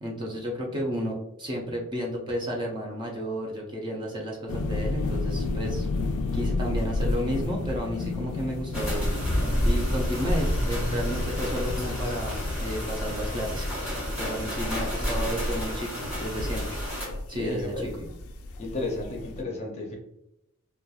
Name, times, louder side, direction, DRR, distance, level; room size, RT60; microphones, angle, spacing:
voice 1, 0.0-5.9 6.3-16.8 17.3-18.1, equal, 20° right, -1 dB, 0.4 m, -32 dB
sound 1, 4.5-19.4, left 2 dB, 80° left, 0.3 m, -32 dB
sound 2, 8.7-17.1, equal, 5° right, 1.2 m, -29 dB
voice 2, 17.1-18.1 18.6-20.0, left 2 dB, 30° left, 0 dB, 0.5 m, -33 dB
2.8 x 2.2 x 2.3 m, 0.82 s
head